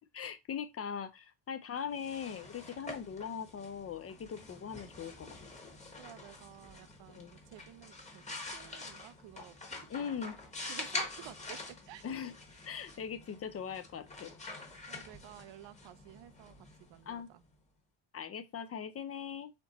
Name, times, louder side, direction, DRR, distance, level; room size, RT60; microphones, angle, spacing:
voice 1, 0.1-5.3 7.1-7.3 9.9-10.4 12.0-12.3 12.7-14.3 17.1-17.3 18.1-19.5, left 7 dB, 35° left, 0.4 m, -40 dB
sound 1, 1.8-17.5, left 2 dB, 15° left, 1.0 m, -46 dB
voice 2, 6.0-10.3 10.7-12.1 14.9-17.4, right 12 dB, 75° right, 0.6 m, -53 dB
4.3 x 2.9 x 4.0 m
cardioid pair, 135°, 45 cm